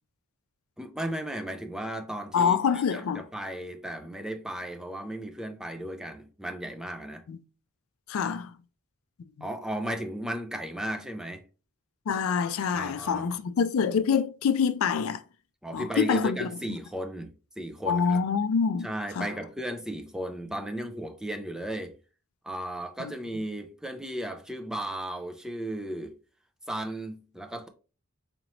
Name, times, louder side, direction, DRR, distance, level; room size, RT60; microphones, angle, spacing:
voice 1, 0.8-7.2 9.4-11.4 12.7-13.3 15.6-18.2 18.8-21.9 22.4-26.2 26.7-27.7, right 1 dB, 5° right, 0.4 m, -35 dB
voice 2, 2.3-3.2 7.3-7.4 8.1-8.5 12.1-15.2 15.7-16.5 17.9-19.3 23.0-23.1, left 6 dB, 65° left, 0.4 m, -26 dB
4.3 x 2.9 x 2.6 m
head